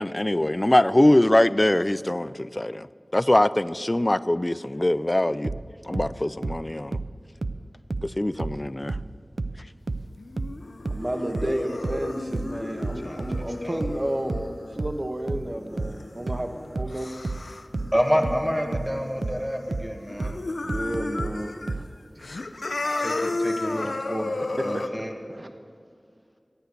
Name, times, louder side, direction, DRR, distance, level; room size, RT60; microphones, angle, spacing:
voice 1, 0.0-2.9 3.1-5.5 5.8-7.0 8.0-9.0, left 1 dB, 30° left, 16 dB, 0.3 m, -22 dB
sound 1, 5.4-8.6 8.9-21.9, right 3 dB, 85° right, 0.4 m, -31 dB
sound 2, 10.2-19.8 20.1-21.7 22.1-24.9, left 2 dB, 90° left, 0.6 m, -34 dB
voice 2, 10.9-17.1 20.6-21.8 22.2-22.3 24.6-25.0 25.3-25.5, right 1 dB, 35° right, 6 dB, 1.1 m, -32 dB
voice 3, 17.9-20.3 23.0-24.4 24.6-25.1, equal, 10° right, 3 dB, 1.6 m, -28 dB
13.5 x 9.3 x 6.7 m, 2.1 s
wide cardioid pair, 40°, 0 cm